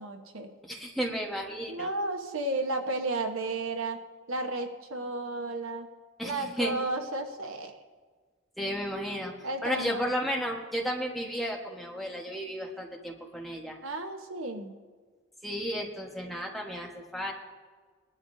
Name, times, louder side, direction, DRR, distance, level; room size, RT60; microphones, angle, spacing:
voice 1, 0.0-0.5 1.7-4.0 4.3-5.9 6.2-7.7 9.4-10.0 13.8-14.7, right 2 dB, 90° right, 5 dB, 1.1 m, -33 dB
voice 2, 0.6-1.9 6.2-6.7 8.6-9.3 9.6-13.8 15.4-17.3, equal, ahead, -1 dB, 1.3 m, -33 dB
20.0 x 11.5 x 2.7 m, 1.5 s
head